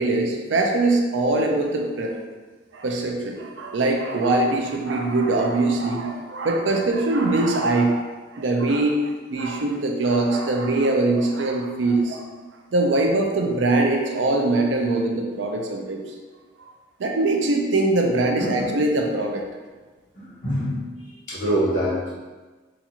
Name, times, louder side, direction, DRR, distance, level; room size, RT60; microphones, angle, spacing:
voice 1, 0.0-2.1 2.7-8.1 8.3-9.0 9.3-12.3 12.7-16.0 17.0-19.4, right 2 dB, 85° right, 2 dB, 0.5 m, -22 dB
voice 2, 18.4-18.8 20.1-20.8 21.3-22.1, equal, 45° left, -9 dB, 1.4 m, -25 dB
4.0 x 2.5 x 2.8 m, 1.3 s
head